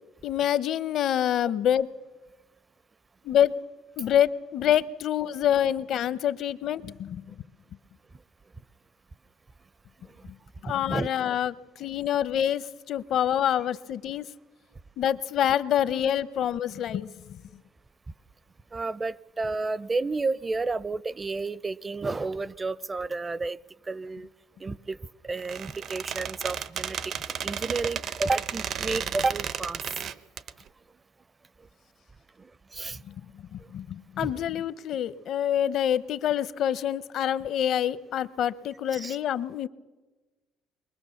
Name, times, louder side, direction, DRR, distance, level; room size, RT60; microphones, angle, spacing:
voice 1, 0.2-1.9 3.2-3.5 4.0-7.3 10.6-14.3 15.0-17.4 33.1-33.2 33.5-39.7, left 10 dB, 65° left, 16 dB, 0.8 m, -26 dB
voice 2, 18.7-23.6 23.9-24.3 24.6-25.0 25.2-27.1 27.4-29.8 32.4-33.0 34.2-34.5 38.9-39.2, right 3 dB, 25° right, 21 dB, 0.6 m, -31 dB
Squeak, 25.4-30.5, right 8 dB, 60° right, 0.9 m, -33 dB
23.0 x 19.5 x 7.1 m, 1.3 s
cardioid pair, 90°, 0 cm